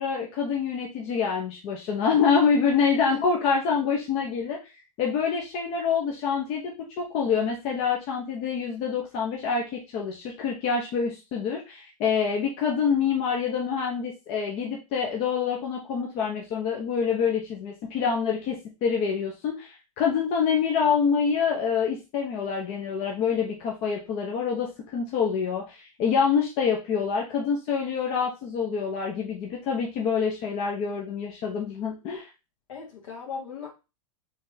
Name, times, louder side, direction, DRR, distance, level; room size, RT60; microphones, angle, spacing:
voice 1, 0.0-4.6 5.0-32.3, left 6 dB, 35° left, 0 dB, 0.8 m, -26 dB
voice 2, 2.9-3.2 32.7-33.7, left 6 dB, 65° left, 0 dB, 1.7 m, -37 dB
3.7 x 3.4 x 2.7 m, 0.28 s
hypercardioid pair, 130°, 18 cm